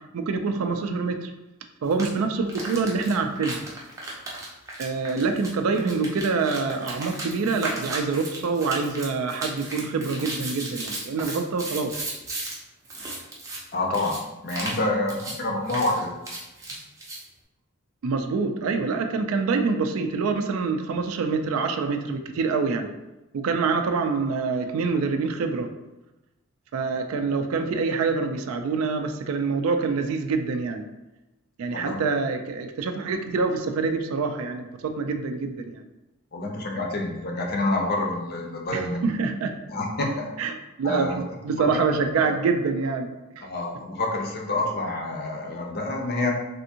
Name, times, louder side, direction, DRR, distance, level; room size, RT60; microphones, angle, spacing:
voice 1, 0.1-1.3 1.8-3.6 4.8-11.9 18.0-22.9 23.4-25.7 26.7-30.8 31.6-35.8 38.7-39.5 40.4-43.5, right 4 dB, 70° right, 6 dB, 0.3 m, -26 dB
sound 1, 1.9-2.1 2.5-12.6 12.8-13.6 13.9-14.2 14.5-14.8 15.1-15.4 15.7-17.2, right 2 dB, 15° right, 0.5 m, -35 dB
voice 2, 13.7-16.1 31.7-32.0 36.3-39.0 39.7-40.3 40.8-41.2 42.1-42.3 43.4-46.3, left 2 dB, 45° left, 1 dB, 0.5 m, -27 dB
3.4 x 2.6 x 2.7 m, 1.0 s
head